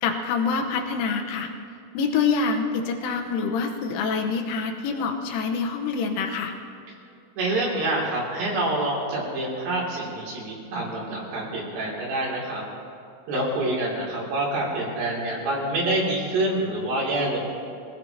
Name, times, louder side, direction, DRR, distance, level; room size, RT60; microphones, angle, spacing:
voice 1, 0.0-1.5 2.0-6.5, left 5 dB, 80° left, 2 dB, 3.6 m, -26 dB
voice 2, 7.4-12.6 13.3-17.4, right 1 dB, 60° right, -4 dB, 4.9 m, -26 dB
25.5 x 17.0 x 3.0 m, 2.4 s
omnidirectional pair, 5.8 m